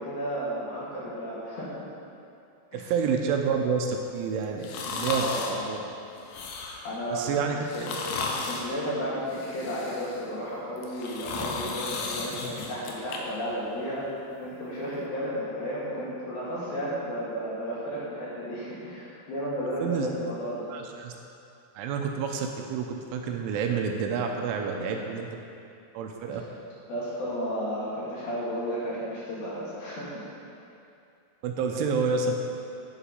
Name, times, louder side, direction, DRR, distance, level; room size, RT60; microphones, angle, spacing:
voice 1, 0.0-1.7 2.7-2.9 5.0-5.7 6.8-7.4 7.7-8.0 8.4-14.1 14.4-20.7 24.8-25.0 26.9-30.3, equal, 55° left, -8 dB, 3.5 m, -33 dB
voice 2, 2.7-5.8 7.1-8.0 19.8-20.1 20.7-21.1 21.8-25.3 25.9-26.4 31.4-32.4, right 5 dB, 85° right, 2 dB, 3.1 m, -29 dB
sound 1, 4.6-5.6 6.2-6.9 7.6-8.7 9.3-10.2 10.8-13.2 13.6-13.7, left 4 dB, 80° left, 2.2 m, -34 dB
10.5 x 7.2 x 5.4 m, 2.6 s
omnidirectional pair, 5.6 m